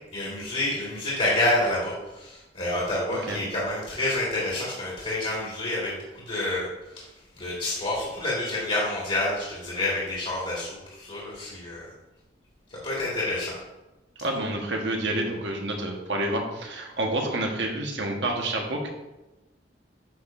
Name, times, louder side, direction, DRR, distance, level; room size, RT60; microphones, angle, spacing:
voice 1, 0.1-6.7 6.9-7.1 7.4-11.9 12.7-13.5, left 1 dB, 35° left, -6 dB, 2.0 m, -28 dB
voice 2, 14.2-18.9, right 1 dB, 70° right, 1 dB, 1.3 m, -28 dB
9.3 x 6.5 x 2.6 m, 1.0 s
head